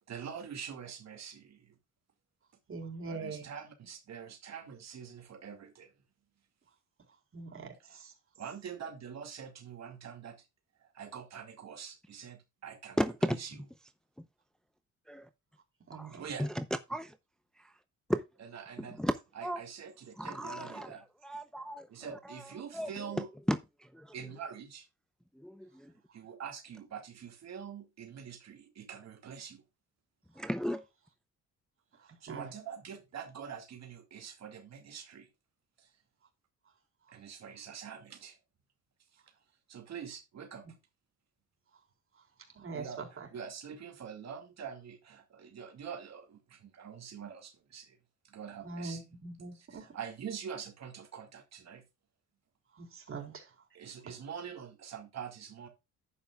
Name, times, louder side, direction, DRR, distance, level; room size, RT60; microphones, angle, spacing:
voice 1, 0.1-1.8 3.1-5.9 7.9-8.0 8.4-10.5 10.8-13.0 13.3-13.6 16.2-16.5 18.4-19.0 19.3-21.0 21.9-23.3 24.1-24.9 26.1-29.6 32.0-35.3 35.8-35.9 37.1-38.4 39.1-39.2 39.7-40.6 42.7-48.0 48.3-49.0 49.5-51.8 53.7-55.7, right 7 dB, 60° right, 2.3 m, -45 dB
voice 2, 2.7-3.5 7.3-8.1 15.9-16.2 32.3-32.5 42.5-43.3 48.6-49.9 52.7-53.5, right 4 dB, 45° right, 4.2 m, -42 dB
voice 3, 13.0-13.4 15.1-15.3 15.9-16.6 16.9-17.2 17.6-17.7 18.1-18.2 18.8-19.6 20.2-20.9 21.3-22.4 22.7-22.9 23.1-24.1 25.4-25.9 30.4-30.8, equal, ahead, 0.7 m, -35 dB
11.0 x 8.7 x 2.4 m
cardioid pair, 90°, 30 cm